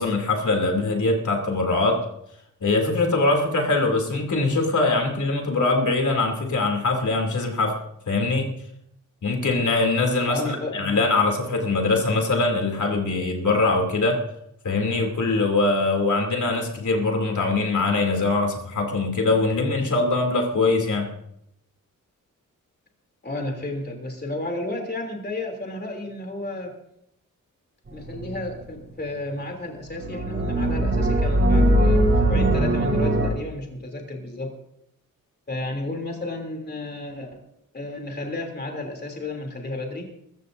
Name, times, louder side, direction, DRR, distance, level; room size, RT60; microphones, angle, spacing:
voice 1, 0.0-2.0 2.6-7.8 8.1-8.5 9.2-14.2 14.6-21.1, left 3 dB, 65° left, 2 dB, 3.0 m, -22 dB
voice 2, 10.2-11.0 23.2-26.7 27.9-34.5 35.5-37.4 37.7-40.1, left 2 dB, 30° left, 1 dB, 3.2 m, -32 dB
sound 1, 27.9-28.7 29.9-33.3, right 1 dB, 40° right, 4.1 m, -20 dB
23.0 x 14.5 x 2.7 m, 0.80 s
wide cardioid pair, 140°, 32 cm